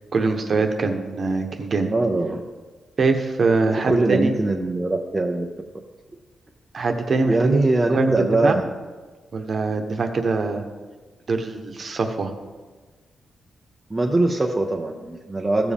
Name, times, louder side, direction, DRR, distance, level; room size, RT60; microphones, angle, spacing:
voice 1, 0.1-1.9 3.0-4.3 6.7-7.6 7.9-8.1 8.4-8.6 9.3-10.6 11.3-12.3, right 3 dB, 40° right, 5 dB, 1.0 m, -23 dB
voice 2, 1.9-2.4 3.7-5.5 7.2-8.7 13.9-15.7, right 2 dB, 15° right, 1 dB, 0.5 m, -22 dB
15.0 x 7.3 x 3.5 m, 1.3 s
wide cardioid pair, 175°, 0 cm